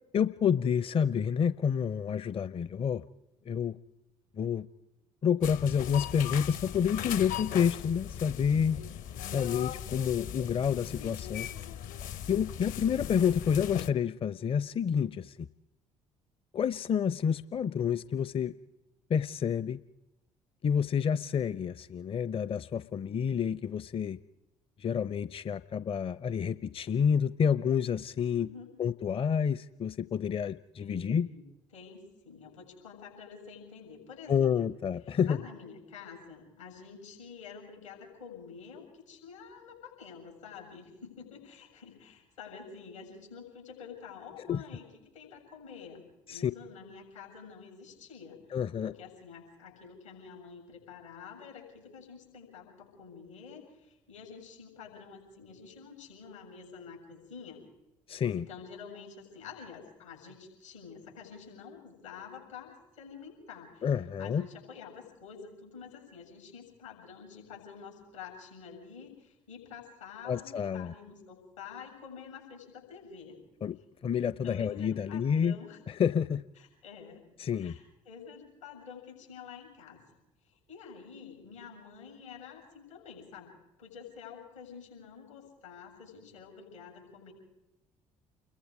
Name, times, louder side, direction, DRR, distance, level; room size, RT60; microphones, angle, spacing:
voice 1, 0.1-3.0 3.5-3.8 4.4-4.7 5.2-8.8 9.3-11.5 12.3-15.5 16.5-18.5 19.1-19.8 20.6-24.2 24.8-28.5 28.8-31.3 34.3-35.4 44.5-44.6 46.3-46.5 48.5-48.9 58.1-58.5 63.8-64.4 70.3-70.9 73.6-73.8 74.0-75.6 75.9-76.4 77.4-77.8, left 7 dB, 35° left, 16 dB, 0.7 m, -29 dB
sound 1, 5.4-13.9, left 10 dB, 55° left, 1.1 m, -39 dB
voice 2, 28.4-28.7 30.8-31.4 31.7-34.7 35.1-44.9 45.1-46.0 46.3-48.5 48.8-57.6 58.3-63.9 64.2-73.4 74.4-75.8 76.6-77.3 77.6-80.0 80.4-87.3, left 6 dB, 80° left, 2 dB, 7.4 m, -48 dB
29.0 x 22.0 x 4.8 m, 0.94 s
figure-of-eight pair, 50°, 16 cm